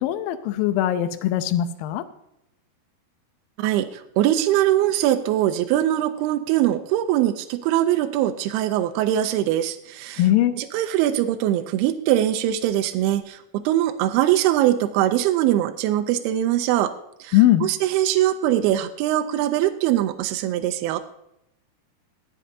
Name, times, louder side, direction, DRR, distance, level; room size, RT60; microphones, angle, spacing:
voice 1, 0.0-2.0 10.2-10.6 17.3-17.7, left 13 dB, 80° left, 10 dB, 2.1 m, -20 dB
voice 2, 3.6-10.2 10.6-16.9 17.2-21.0, right 12 dB, 80° right, 8 dB, 2.5 m, -22 dB
18.5 x 7.6 x 2.7 m, 0.82 s
omnidirectional pair, 4.7 m